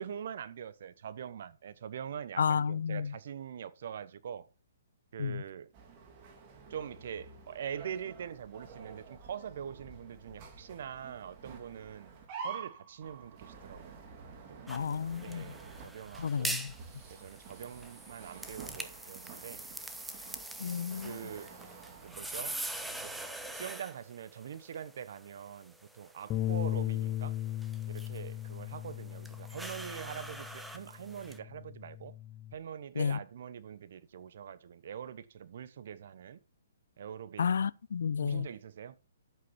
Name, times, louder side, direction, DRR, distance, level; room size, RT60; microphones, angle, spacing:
voice 1, 0.0-4.5 5.1-5.7 6.7-12.1 12.4-14.1 14.5-14.9 15.2-16.6 17.1-19.6 21.0-21.5 22.0-22.6 23.0-23.1 23.5-27.4 27.9-32.1 32.5-36.4 37.0-37.5 38.2-39.0, right 8 dB, 60° right, 1.0 m, -43 dB
voice 2, 2.4-3.1 5.2-5.4 14.7-15.5 16.2-16.7 20.6-21.2 33.0-33.2 37.4-38.5, left 6 dB, 70° left, 0.5 m, -31 dB
sound 1, 5.7-23.7, right 5 dB, 35° right, 2.9 m, -50 dB
sound 2, 14.7-31.4, right 1 dB, 5° right, 1.1 m, -44 dB
Bass guitar, 26.3-30.8 31.2-32.5, left 13 dB, 25° left, 0.8 m, -37 dB
11.5 x 8.0 x 4.3 m
hypercardioid pair, 130°, 0 cm